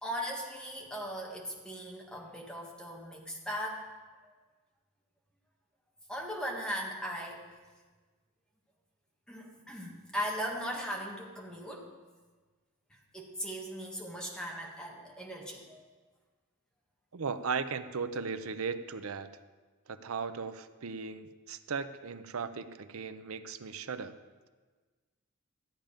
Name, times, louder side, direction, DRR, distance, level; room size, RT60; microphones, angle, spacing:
voice 1, 0.0-3.9 6.1-7.4 9.3-11.9 13.1-15.9, equal, 5° left, -1 dB, 1.5 m, -38 dB
voice 2, 17.1-19.3 19.9-24.1, right 5 dB, 80° right, 11 dB, 0.6 m, -37 dB
13.5 x 8.9 x 5.2 m, 1.4 s
head